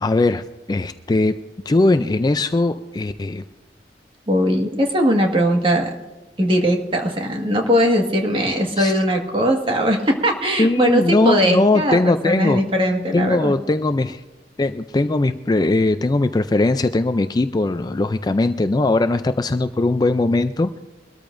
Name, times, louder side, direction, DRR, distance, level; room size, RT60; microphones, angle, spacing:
voice 1, 0.0-3.4 8.8-9.0 10.6-12.6 13.1-14.2 14.6-20.8, left 2 dB, 25° left, 10 dB, 0.4 m, -20 dB
voice 2, 4.3-5.9 6.4-13.5, equal, 30° right, 2 dB, 1.7 m, -19 dB
23.0 x 13.5 x 2.6 m, 1.1 s
head